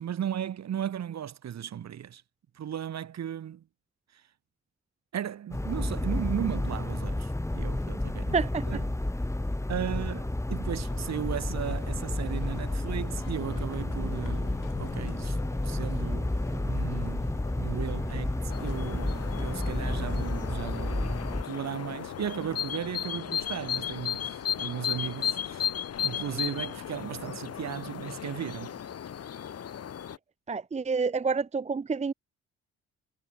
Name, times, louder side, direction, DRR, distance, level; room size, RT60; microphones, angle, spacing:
voice 1, 0.0-2.2 2.5-3.6 4.1-4.2 5.1-8.4 8.6-9.0 9.7-15.4 15.6-25.7 26.0-28.8, right 9 dB, 60° right, 4.1 m, -36 dB
sound 1, 5.5-21.4, left 1 dB, 10° left, 4.0 m, -31 dB
voice 2, 8.3-8.7 30.5-32.1, right 5 dB, 20° right, 0.7 m, -28 dB
sound 2, 10.9-27.0, left 16 dB, 90° left, 3.4 m, -48 dB
sound 3, 18.5-30.2, left 9 dB, 55° left, 2.5 m, -35 dB
cardioid pair, 90°, 30 cm